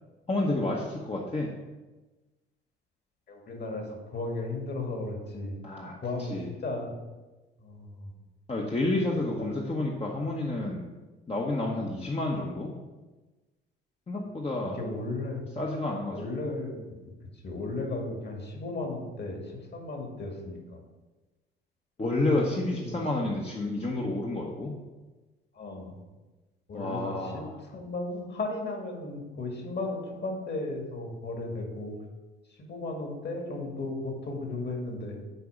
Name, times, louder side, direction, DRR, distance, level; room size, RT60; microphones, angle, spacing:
voice 1, 0.3-1.5 5.6-5.9 6.3-6.5 8.5-10.9 11.3-12.7 14.1-14.8 15.6-16.4 22.0-24.8 26.7-27.6, left 2 dB, 20° left, -1 dB, 1.1 m, -30 dB
voice 2, 3.3-5.6 6.0-6.4 6.6-6.9 7.6-8.1 14.7-15.4 16.1-17.1 17.4-20.6 22.7-23.0 25.5-26.0 26.7-32.0 32.6-35.2, left 2 dB, 35° left, 2 dB, 2.1 m, -35 dB
8.0 x 4.8 x 5.0 m, 1.2 s
figure-of-eight pair, 50°, 29 cm